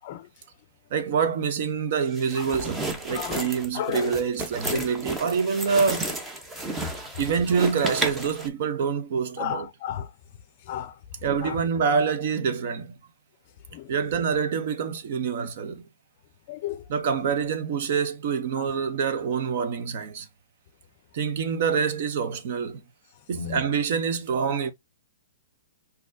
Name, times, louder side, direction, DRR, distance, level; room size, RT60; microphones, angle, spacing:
voice 1, 0.9-6.1 7.2-9.7 11.2-13.0 13.9-15.8 16.9-20.3 21.1-22.8 23.3-24.7, right 6 dB, 50° right, 0.7 m, -26 dB
sound 1, 2.1-8.5, right 2 dB, 10° right, 0.7 m, -33 dB
voice 2, 3.1-4.2 4.7-4.9 9.4-10.1 10.7-10.9 11.4-11.6 13.7-13.9 16.5-16.8 23.3-23.6, left 11 dB, 40° left, 0.5 m, -33 dB
4.2 x 2.7 x 2.6 m
hypercardioid pair, 155°, 0 cm